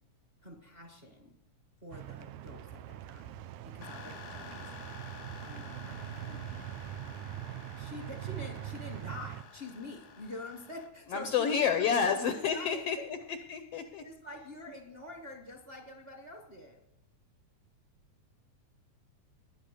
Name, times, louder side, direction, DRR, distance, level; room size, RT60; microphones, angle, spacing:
voice 1, 0.4-1.4 1.8-3.4 3.6-4.7 5.4-6.4 7.7-12.1 12.5-13.2 14.0-16.8, left 1 dB, 25° right, 2 dB, 1.3 m, -46 dB
sound 1, 1.9-9.4, right 12 dB, 85° right, 2.2 m, -42 dB
sound 2, 3.8-10.9, left 5 dB, 50° left, 1.1 m, -50 dB
voice 2, 11.1-13.0 13.5-14.0, left 7 dB, 70° left, 8 dB, 1.5 m, -29 dB
20.0 x 9.9 x 6.5 m, 0.92 s
omnidirectional pair, 3.5 m